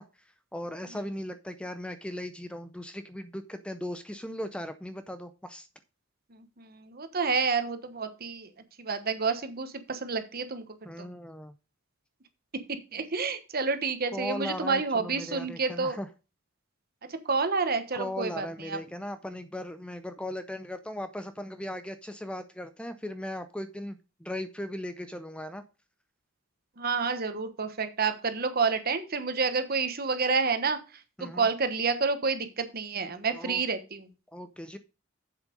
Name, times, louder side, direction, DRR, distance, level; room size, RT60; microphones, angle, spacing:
voice 1, 0.0-5.7 10.8-11.6 14.1-16.1 17.9-25.6 31.2-31.5 33.3-33.6 34.3-34.8, left 1 dB, 5° left, 10 dB, 0.5 m, -38 dB
voice 2, 6.6-8.5 8.8-10.6 11.0-11.1 12.9-16.0 17.3-18.8 26.8-30.8 31.2-34.0, right 4 dB, 45° right, 9 dB, 1.2 m, -29 dB
7.3 x 7.3 x 5.2 m, 0.32 s
head